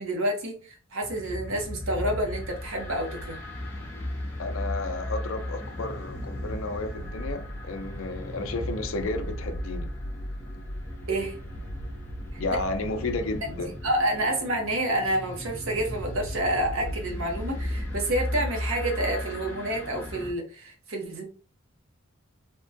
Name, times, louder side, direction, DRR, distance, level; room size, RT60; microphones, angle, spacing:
voice 1, 0.0-3.4 11.1-11.4 12.3-12.6 13.8-21.2, right 1 dB, 65° right, 0.8 m, -28 dB
sound 1, 1.0-20.3, left 1 dB, 10° left, 0.7 m, -35 dB
voice 2, 4.4-9.9 12.4-13.7, left 2 dB, 65° left, 0.5 m, -32 dB
3.5 x 2.1 x 2.6 m
head